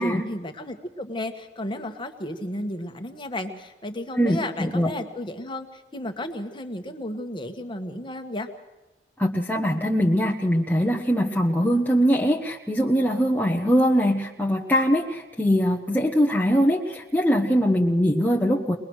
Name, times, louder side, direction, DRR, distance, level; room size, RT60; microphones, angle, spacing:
voice 1, 0.0-8.5, left 1 dB, 25° left, 6 dB, 1.4 m, -33 dB
voice 2, 4.2-4.9 9.2-18.8, equal, 10° left, -1 dB, 1.0 m, -22 dB
22.0 x 21.5 x 6.4 m, 1.1 s
head